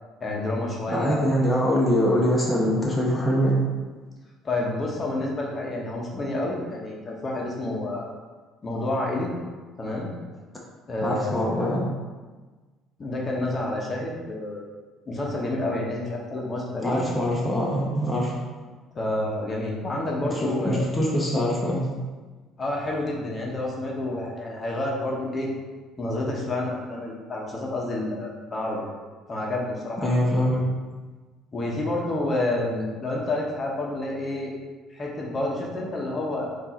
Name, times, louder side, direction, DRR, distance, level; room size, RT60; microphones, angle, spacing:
voice 1, 0.2-1.4 4.4-8.1 8.6-9.3 9.8-10.1 10.9-11.4 13.0-14.6 15.1-17.0 18.9-20.9 22.6-25.5 26.0-28.8 29.3-30.1 31.5-34.5 34.9-36.5, left 2 dB, 30° left, -2 dB, 0.9 m, -29 dB
voice 2, 0.9-3.6 11.0-11.8 16.8-18.4 20.3-21.9 30.0-30.7, equal, 10° left, -5 dB, 0.9 m, -23 dB
4.5 x 2.6 x 4.3 m, 1.3 s
cardioid pair, 100°, 0 cm